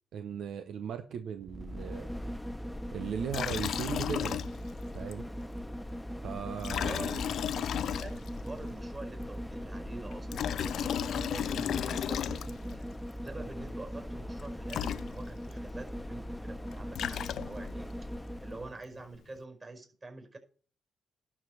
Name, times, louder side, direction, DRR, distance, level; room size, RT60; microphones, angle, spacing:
voice 1, 0.1-2.4 2.9-4.4 4.9-5.3 6.2-7.2, right 8 dB, 70° right, 8 dB, 0.8 m, -38 dB
sound 1, 1.4-18.8 19.1-19.2, equal, 10° left, 0.8 m, -40 dB
Liquid, 3.3-4.8 5.1-5.2 6.6-8.5 10.1-12.8 14.4-14.5 14.7-15.5 16.7-17.8, left 9 dB, 70° left, 0.4 m, -34 dB
voice 2, 6.8-7.2 7.8-10.6 11.0-12.9 13.2-18.1 18.4-20.4, right 2 dB, 35° right, 5 dB, 5.2 m, -46 dB
12.0 x 4.9 x 8.2 m, 0.41 s
hypercardioid pair, 50°, 0 cm